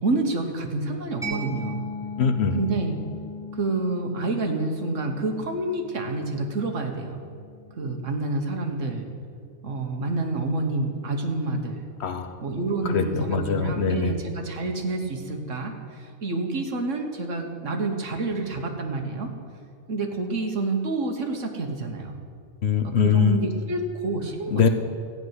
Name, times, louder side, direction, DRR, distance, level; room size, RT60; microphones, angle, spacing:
voice 1, 0.0-1.8 2.5-3.0 3.5-7.2 7.8-9.1 9.6-11.9 12.4-19.3 19.9-22.2 22.8-24.7, right 2 dB, 85° right, 4 dB, 1.7 m, -28 dB
Mallet percussion, 1.2-8.6, left 2 dB, 5° right, 2.8 m, -39 dB
voice 2, 2.2-2.6 12.0-12.3 12.8-14.1 22.6-23.7 24.5-24.7, left 6 dB, 60° left, 8 dB, 1.1 m, -23 dB
14.5 x 6.0 x 9.6 m, 2.2 s
omnidirectional pair, 1.2 m